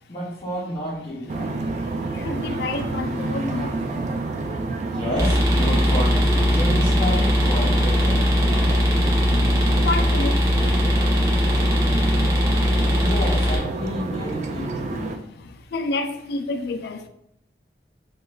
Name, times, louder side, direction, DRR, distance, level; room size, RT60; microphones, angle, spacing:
voice 1, 0.1-1.6 4.9-8.2 12.9-15.2, equal, 35° left, 0.8 m, -30 dB
sound 1, 1.3-15.2, right 3 dB, 40° right, 0.3 m, -28 dB
voice 2, 2.2-3.7 9.8-10.8 15.7-17.1, left 3 dB, 60° left, 0.3 m, -28 dB
sound 2, 5.1-13.6, equal, 20° right, 0.7 m, -20 dB
3.0 x 2.3 x 3.7 m
head